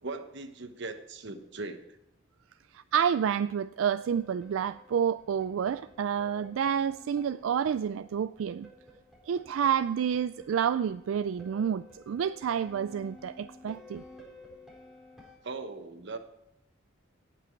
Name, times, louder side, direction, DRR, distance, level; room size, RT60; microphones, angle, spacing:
voice 1, 0.0-1.8 15.4-16.2, right 3 dB, 65° right, 1.1 m, -39 dB
voice 2, 2.7-8.7 9.3-14.0, right 8 dB, 85° right, 0.3 m, -29 dB
sound 1, 3.9-15.4, left 1 dB, ahead, 4.2 m, -54 dB
17.5 x 6.1 x 4.6 m
head